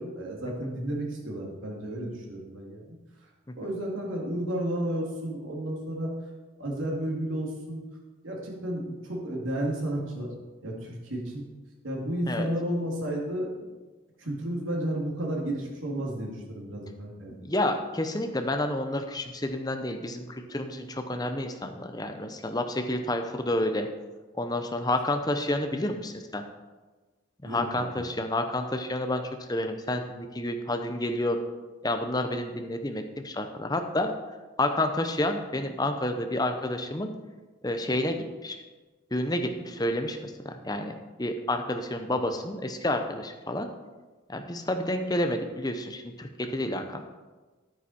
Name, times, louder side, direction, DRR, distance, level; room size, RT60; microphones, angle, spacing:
voice 1, 0.0-3.0 3.6-6.1 6.6-7.8 8.2-10.3 10.6-11.4 11.8-13.7 14.2-17.3 27.5-27.9, right 1 dB, 85° right, -2 dB, 2.6 m, -32 dB
voice 2, 17.3-23.9 24.3-26.4 27.4-29.2 29.5-31.4 31.8-34.1 34.6-37.1 37.6-38.2 38.4-38.6 39.1-40.9 41.2-43.7 44.3-47.0, left 1 dB, 20° left, 6 dB, 0.7 m, -29 dB
10.0 x 9.1 x 4.3 m, 1.2 s
head